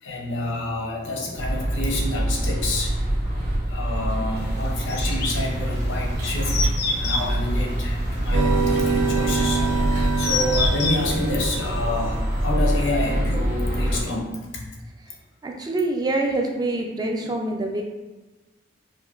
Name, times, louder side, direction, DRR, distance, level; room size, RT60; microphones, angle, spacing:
voice 1, 0.0-2.9 3.2-3.4 3.7-14.6, left 2 dB, 85° left, -1 dB, 0.7 m, -28 dB
sound 1, 1.4-14.0, right 1 dB, 60° right, 1.2 m, -25 dB
sound 2, 4.9-11.2, left 4 dB, 55° left, 0.5 m, -29 dB
sound 3, 8.3-12.6, right 4 dB, 90° right, 0.7 m, -26 dB
voice 2, 15.4-17.8, right 2 dB, 20° right, 2 dB, 0.3 m, -25 dB
5.3 x 2.2 x 2.4 m, 1.2 s
head